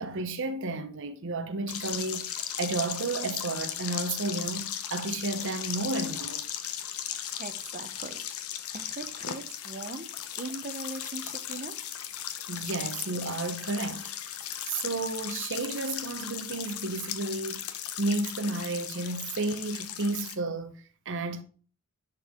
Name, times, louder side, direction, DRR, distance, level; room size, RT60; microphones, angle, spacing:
voice 1, 0.0-6.5 12.5-20.8 21.1-21.4, right 2 dB, 60° right, 0.9 m, -32 dB
sound 1, 1.7-20.3, left 10 dB, 80° left, 0.9 m, -37 dB
voice 2, 7.4-8.2 8.7-10.1 10.4-11.8, right 3 dB, 35° right, 1.0 m, -40 dB
10.5 x 4.5 x 3.7 m
head